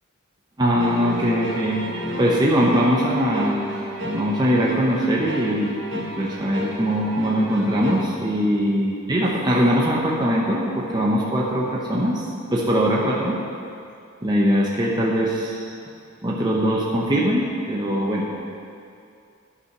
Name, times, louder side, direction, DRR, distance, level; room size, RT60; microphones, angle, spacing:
voice 1, 0.6-3.6 4.0-13.4 14.2-15.7 16.2-18.4, equal, 20° right, -4 dB, 0.8 m, -22 dB
sound 1, 0.8-8.0, equal, 55° right, 1.1 m, -32 dB
11.0 x 5.5 x 5.9 m, 2.5 s
head